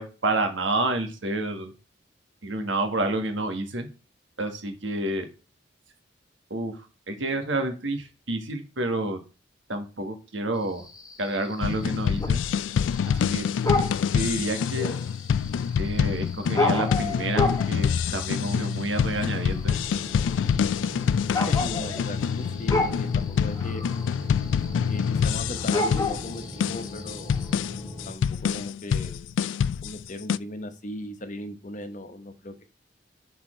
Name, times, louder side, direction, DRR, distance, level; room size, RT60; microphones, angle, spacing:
voice 1, 0.0-1.7 2.4-3.9 4.4-5.3 6.5-6.7 7.1-9.2 9.7-10.8 11.2-12.4 13.2-13.5 14.1-14.9 15.8-19.8, right 2 dB, 90° right, 6 dB, 1.6 m, -29 dB
sound 1, 10.6-27.5, left 2 dB, 20° left, 1.2 m, -32 dB
sound 2, 11.6-30.4, left 7 dB, 90° left, 0.3 m, -26 dB
sound 3, 19.7-28.1, left 1 dB, 5° left, 1.9 m, -40 dB
voice 2, 21.5-23.8 24.9-27.3 28.1-29.3 29.8-32.6, left 1 dB, 45° left, 8 dB, 1.1 m, -37 dB
6.4 x 4.5 x 4.4 m, 0.32 s
head